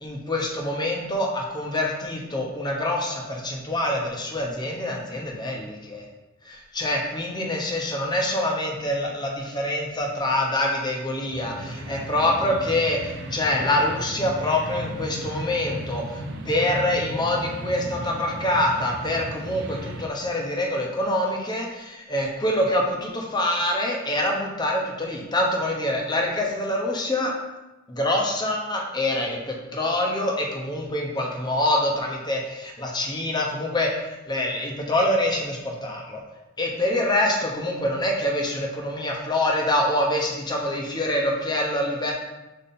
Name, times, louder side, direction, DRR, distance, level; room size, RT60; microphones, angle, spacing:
voice 1, 0.0-6.0 6.4-27.3 27.9-36.2 36.6-42.1, left 1 dB, 20° left, 0 dB, 0.9 m, -25 dB
sound 1, 11.2-20.1, right 1 dB, 55° right, 0.6 m, -36 dB
5.5 x 4.4 x 4.3 m, 1.0 s
head